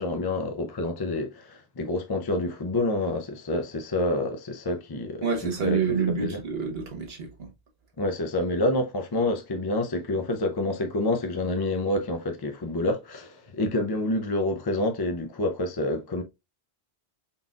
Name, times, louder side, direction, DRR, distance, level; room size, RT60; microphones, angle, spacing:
voice 1, 0.0-5.8 6.2-6.4 8.0-16.2, left 2 dB, 30° left, 0.4 m, -28 dB
voice 2, 5.2-7.5, right 5 dB, 70° right, 1.3 m, -27 dB
3.9 x 3.7 x 2.3 m
omnidirectional pair, 1.1 m